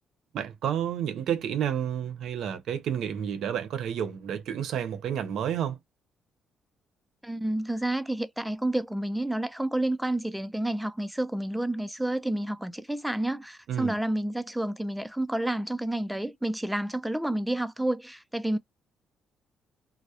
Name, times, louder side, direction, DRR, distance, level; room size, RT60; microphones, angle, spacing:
voice 1, 0.3-5.8 13.7-13.9, right 9 dB, 75° right, 0.5 m, -30 dB
voice 2, 7.2-18.6, right 1 dB, 5° right, 0.3 m, -30 dB
2.2 x 2.0 x 2.7 m
cardioid pair, 90°, 0 cm